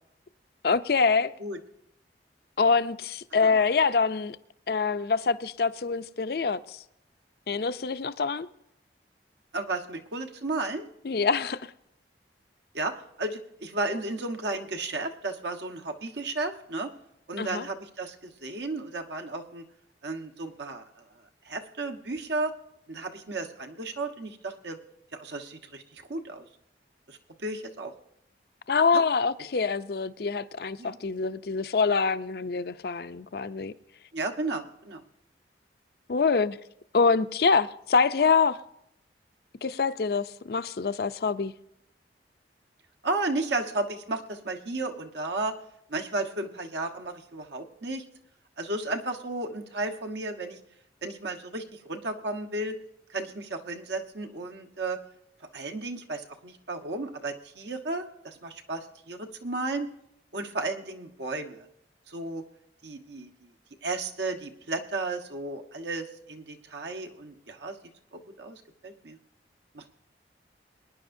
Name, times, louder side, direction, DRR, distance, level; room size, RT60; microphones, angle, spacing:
voice 1, 0.6-1.3 2.6-4.4 4.7-6.8 7.5-8.5 11.0-11.7 17.4-17.7 28.7-33.7 36.1-36.6 36.9-38.6 39.6-41.5, left 5 dB, 60° left, 0.5 m, -25 dB
voice 2, 9.5-10.9 12.7-16.9 17.3-19.6 20.0-20.8 21.4-22.5 22.9-24.8 25.1-26.4 27.1-27.9 28.9-29.0 30.8-31.0 34.1-35.0 43.0-45.5 45.9-48.0 48.6-50.6 51.0-52.8 53.1-55.0 55.5-59.9 60.3-61.7 62.1-62.4 62.8-63.5 63.8-67.8 68.1-69.2 69.7-69.9, right 2 dB, 75° right, 1.3 m, -33 dB
22.0 x 10.5 x 2.7 m
head